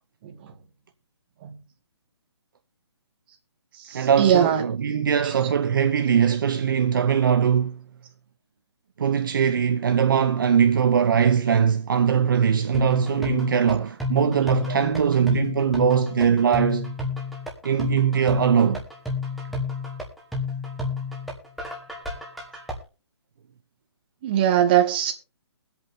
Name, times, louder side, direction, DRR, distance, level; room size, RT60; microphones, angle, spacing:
voice 1, 0.2-0.5 1.4-1.5 3.7-4.7 5.2-5.4 14.7-14.8 24.2-25.1, right 10 dB, 20° right, 1.5 m, -22 dB
voice 2, 3.9-7.8 9.0-16.9 17.6-18.8, right 7 dB, 50° right, 0.8 m, -21 dB
sound 1, 12.7-22.7, left 4 dB, ahead, 1.3 m, -30 dB
22.5 x 8.2 x 2.7 m
hypercardioid pair, 170°, 14 cm